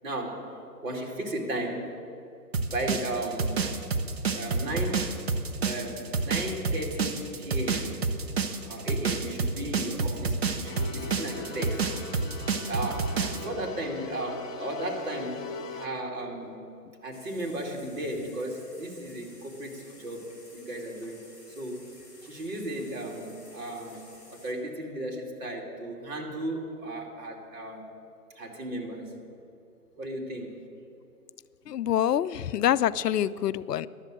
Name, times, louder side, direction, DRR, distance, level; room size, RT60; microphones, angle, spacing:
voice 1, 0.0-2.0 2.6-3.6 4.3-5.2 5.6-8.0 8.6-11.9 12.7-16.7 17.0-20.2 20.5-21.2 21.5-21.9 22.2-27.9 28.4-29.2 30.0-30.6, right 1 dB, 55° right, 0 dB, 2.8 m, -35 dB
sound 1, 2.5-13.4, right 4 dB, 40° right, 0.8 m, -28 dB
sound 2, 10.6-15.9, left 3 dB, 55° left, 1.6 m, -41 dB
sound 3, 17.1-24.5, left 2 dB, 5° right, 1.0 m, -53 dB
voice 2, 31.7-33.9, left 11 dB, 80° left, 16 dB, 0.6 m, -26 dB
11.5 x 7.3 x 9.0 m, 2.6 s
hypercardioid pair, 160°, 48 cm